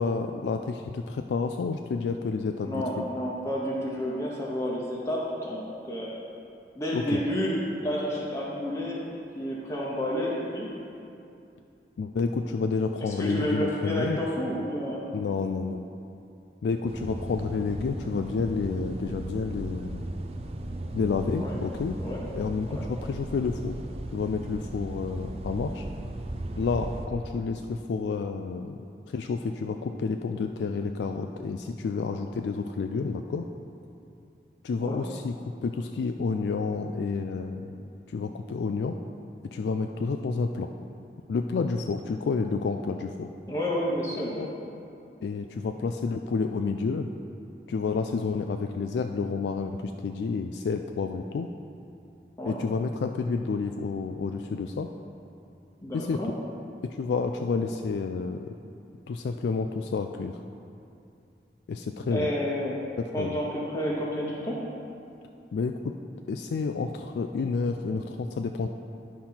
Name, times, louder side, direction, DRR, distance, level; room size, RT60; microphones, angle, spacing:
voice 1, 0.0-3.0 6.9-7.2 12.0-14.2 15.1-15.8 16.6-20.0 20.9-22.0 22.3-23.8 24.1-25.9 26.6-28.8 29.1-33.5 34.6-35.3 35.6-37.6 38.1-39.0 39.4-40.7 41.3-43.3 44.4-44.5 45.2-47.1 47.7-51.5 52.4-54.9 55.9-56.3 56.8-58.5 59.1-60.4 61.7-62.3 63.0-63.4 65.5-65.9 66.3-68.7, left 4 dB, 80° left, 5 dB, 0.3 m, -30 dB
voice 2, 2.6-6.1 6.7-7.5 7.8-9.0 9.3-10.7 13.0-15.0 21.4-21.6 22.0-22.2 22.7-22.9 34.8-35.0 43.5-44.5 52.4-52.6 55.8-56.3 62.1-62.8 63.1-64.6, equal, 15° left, -4 dB, 0.8 m, -30 dB
sound 1, 16.9-27.1, right 1 dB, 35° right, 0.4 m, -37 dB
10.5 x 4.3 x 5.7 m, 2.6 s
head